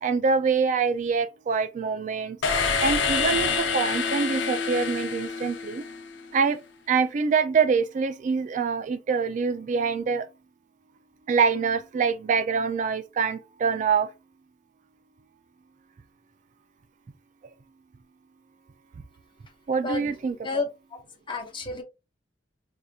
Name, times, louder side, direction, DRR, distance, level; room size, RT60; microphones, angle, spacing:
voice 1, 0.0-2.4 2.8-5.8 6.3-6.6 6.9-10.3 11.3-14.1 19.7-20.6, right 5 dB, 45° right, 0.3 m, -25 dB
sound 1, 2.4-6.3, left 5 dB, 80° left, 0.7 m, -27 dB
voice 2, 21.3-21.8, left 4 dB, 30° left, 1.0 m, -30 dB
4.7 x 2.7 x 2.3 m
head